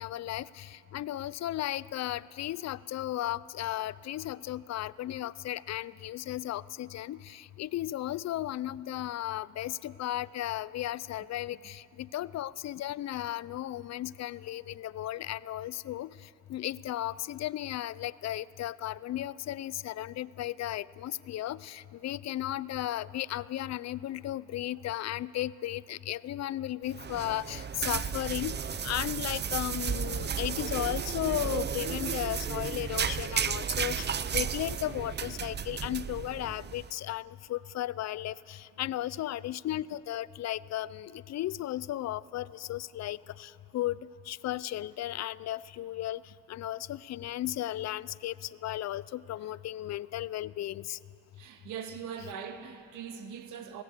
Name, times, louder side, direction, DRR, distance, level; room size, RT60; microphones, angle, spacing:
voice 1, 0.0-46.2 46.5-51.0, left 13 dB, 60° left, 0.5 m, -35 dB
sound 1, 26.9-36.9, right 7 dB, 35° right, 0.7 m, -33 dB
voice 2, 51.4-53.8, right 7 dB, 90° right, 1.8 m, -41 dB
20.5 x 18.0 x 8.2 m
cardioid pair, 90°, 30 cm